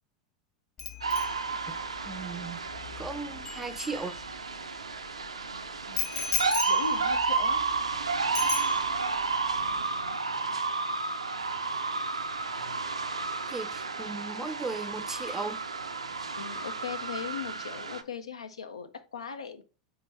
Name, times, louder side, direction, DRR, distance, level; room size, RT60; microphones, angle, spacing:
Bicycle bell, 0.8-4.6 6.0-8.0 8.3-9.2 9.5-9.8, left 7 dB, 30° left, 1.2 m, -37 dB
sound 1, 1.0-18.0, right 4 dB, 85° right, 0.4 m, -32 dB
voice 1, 1.7-2.7 3.0-4.1 13.5-15.6, right 4 dB, 10° right, 0.4 m, -37 dB
voice 2, 6.7-7.7 16.4-19.6, left 7 dB, 80° left, 0.5 m, -39 dB
4.4 x 3.6 x 3.1 m
figure-of-eight pair, 85°, 3 cm